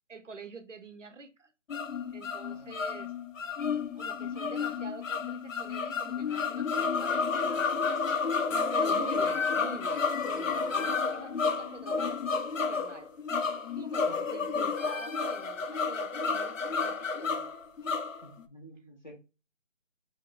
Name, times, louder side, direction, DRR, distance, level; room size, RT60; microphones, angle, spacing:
voice 1, 0.1-1.5 2.1-3.1 3.9-7.8 8.5-13.1 13.8-17.6, right 4 dB, 70° right, 0.8 m, -46 dB
sound 1, 1.7-18.4, left 5 dB, 85° left, 0.8 m, -31 dB
voice 2, 18.2-19.2, equal, 35° left, 0.6 m, -51 dB
5.1 x 2.1 x 3.8 m
figure-of-eight pair, 170°, 38 cm